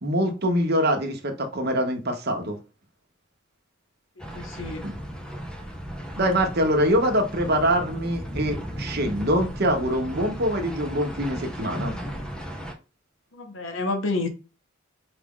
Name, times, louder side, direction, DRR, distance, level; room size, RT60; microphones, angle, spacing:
voice 1, 0.0-2.6 4.8-4.9 6.2-11.9, equal, 50° right, 1.0 m, -24 dB
sound 1, 4.2-12.7, equal, 5° left, 0.5 m, -35 dB
voice 2, 4.3-4.9 13.3-14.3, left 3 dB, 75° left, 0.8 m, -29 dB
4.9 x 2.4 x 3.7 m
head